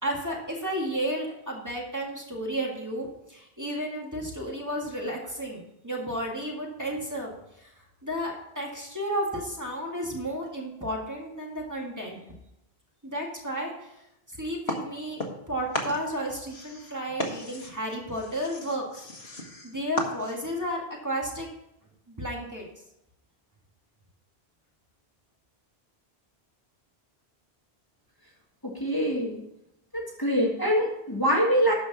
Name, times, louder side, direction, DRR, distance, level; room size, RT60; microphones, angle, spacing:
voice 1, 0.0-12.2 13.0-13.9 14.3-19.0 19.6-21.5 22.1-22.7, equal, 15° right, -3 dB, 2.0 m, -33 dB
sound 1, 14.7-15.5 15.7-20.6, left 1 dB, 75° left, 1.7 m, -35 dB
voice 2, 28.8-29.4 29.9-31.7, equal, 20° left, -2 dB, 1.7 m, -24 dB
12.5 x 5.1 x 5.9 m, 0.84 s
omnidirectional pair, 1.1 m